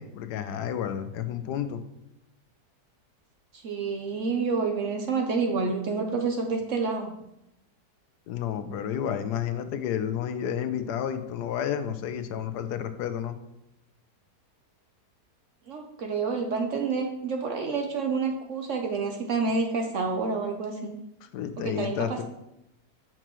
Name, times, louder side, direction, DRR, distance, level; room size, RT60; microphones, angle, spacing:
voice 1, 0.0-1.8 8.3-13.4 21.3-22.2, left 9 dB, 75° left, 10 dB, 1.1 m, -31 dB
voice 2, 3.6-7.1 15.7-20.9 21.6-22.2, right 4 dB, 60° right, 4 dB, 0.9 m, -28 dB
7.7 x 6.0 x 3.0 m, 0.84 s
omnidirectional pair, 1.8 m